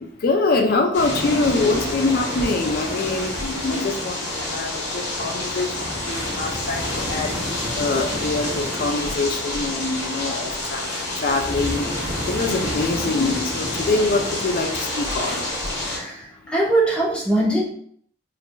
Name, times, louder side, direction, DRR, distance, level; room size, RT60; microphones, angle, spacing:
voice 1, 0.0-7.4 7.7-10.8 11.2-11.9 12.2-15.4, left 3 dB, 50° left, 3 dB, 0.4 m, -24 dB
sound 1, 0.9-16.0, left 1 dB, 70° left, 1.3 m, -28 dB
voice 2, 15.9-17.6, right 1 dB, 5° left, -5 dB, 0.9 m, -22 dB
4.4 x 2.5 x 2.2 m, 0.62 s
head